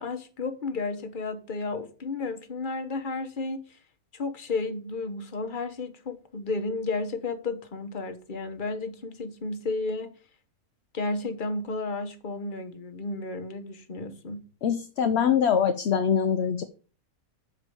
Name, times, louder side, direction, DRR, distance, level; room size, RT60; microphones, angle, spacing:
voice 1, 0.0-3.8 4.1-10.1 10.9-14.5, left 3 dB, 40° left, 1.1 m, -32 dB
voice 2, 14.6-16.6, left 7 dB, 55° left, 0.8 m, -23 dB
6.8 x 4.7 x 6.8 m
omnidirectional pair, 1.5 m